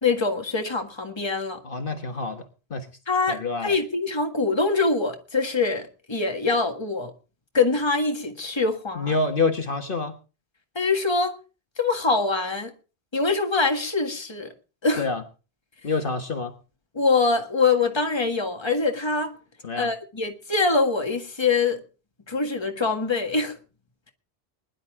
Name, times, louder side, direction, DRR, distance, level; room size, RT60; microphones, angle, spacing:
voice 1, 0.0-1.6 3.1-7.1 7.5-9.1 10.8-11.4 11.8-12.7 13.1-14.5 14.8-15.0 16.9-19.3 19.8-21.8 22.3-23.6, left 4 dB, 25° left, 1.8 m, -24 dB
voice 2, 1.6-2.4 2.7-2.9 3.3-3.8 9.0-10.2 15.0-15.2 15.8-16.5 19.6-19.9, left 3 dB, 55° left, 1.6 m, -27 dB
21.0 x 11.0 x 3.7 m
omnidirectional pair, 1.1 m